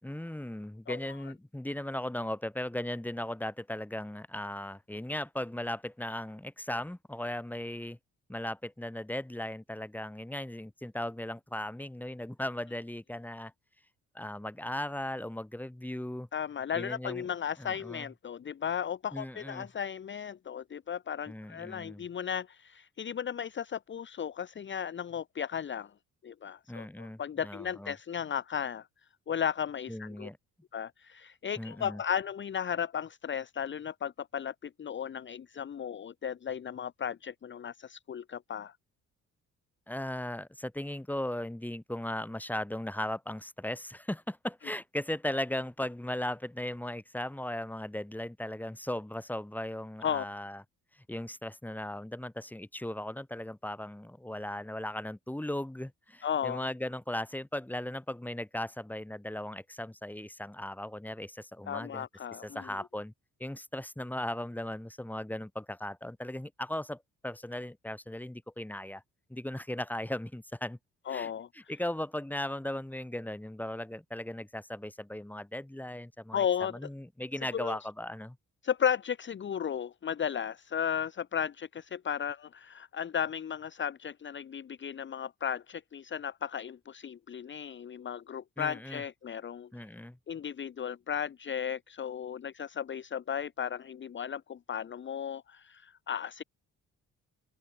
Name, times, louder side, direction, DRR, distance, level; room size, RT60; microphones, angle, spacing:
voice 1, 0.0-8.0 8.3-13.5 14.1-16.3 16.7-17.3 17.6-18.1 19.1-19.7 21.3-22.1 26.7-27.9 29.9-30.4 31.6-32.0 39.9-50.6 50.9-62.1 62.4-63.1 63.4-69.0 69.3-70.8 71.1-78.4 88.6-89.0 89.7-90.2, left 1 dB, 5° left, 3.8 m, -37 dB
voice 2, 16.3-25.9 26.2-28.9 29.3-30.3 30.7-38.8 50.0-50.2 56.2-56.7 61.7-62.6 71.1-71.5 76.3-76.8 77.5-77.8 78.6-89.9 90.3-96.4, left 8 dB, 40° left, 0.9 m, -35 dB
open air
cardioid pair, 90°, 30 cm